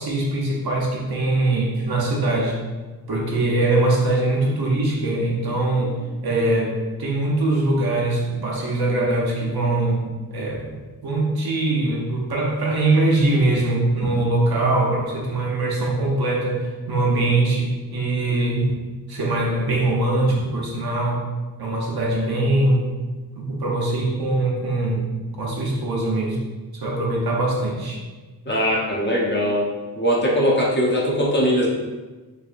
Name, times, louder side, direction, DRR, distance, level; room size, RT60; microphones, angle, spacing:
voice 1, 0.0-2.6 3.1-6.0 6.2-6.7 7.0-10.0 10.3-18.7 19.1-21.3 21.6-22.9 23.4-25.1 25.4-26.4 26.7-28.0, right 2 dB, 75° right, -3 dB, 0.9 m, -22 dB
voice 2, 28.5-29.7 29.9-31.7, equal, 30° left, -4 dB, 0.7 m, -20 dB
3.3 x 3.2 x 2.5 m, 1.3 s
wide cardioid pair, 140°, 38 cm